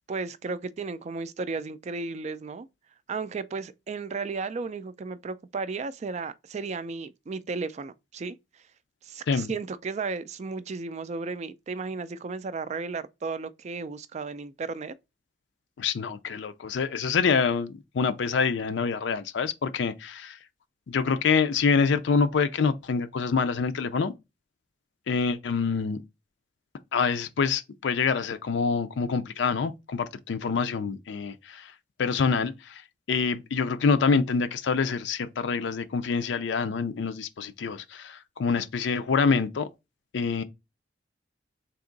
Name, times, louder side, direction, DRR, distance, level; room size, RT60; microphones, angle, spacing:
voice 1, 0.1-2.7 3.1-8.4 9.0-14.9, right 4 dB, 35° right, 0.3 m, -34 dB
voice 2, 15.8-20.4 20.9-24.1 25.1-26.0 26.9-31.7 32.0-32.8 33.1-39.7 40.1-40.4, left 5 dB, 70° left, 0.4 m, -26 dB
3.5 x 2.9 x 3.8 m
head